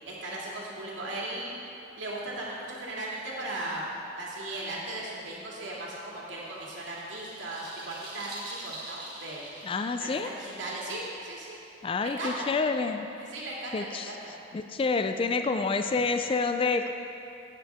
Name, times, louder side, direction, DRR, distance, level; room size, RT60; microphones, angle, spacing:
voice 1, 0.1-1.6 2.0-3.9 4.2-9.4 10.0-11.6 12.0-12.5 13.2-14.3, right 2 dB, 90° right, -5 dB, 2.3 m, -37 dB
sound 1, 6.1-11.9, right 1 dB, 25° right, 2.0 m, -45 dB
voice 2, 9.6-10.3 11.8-13.1 13.7-14.1 14.5-16.9, left 4 dB, 30° left, 7 dB, 0.3 m, -28 dB
12.0 x 8.9 x 3.5 m, 2.6 s
head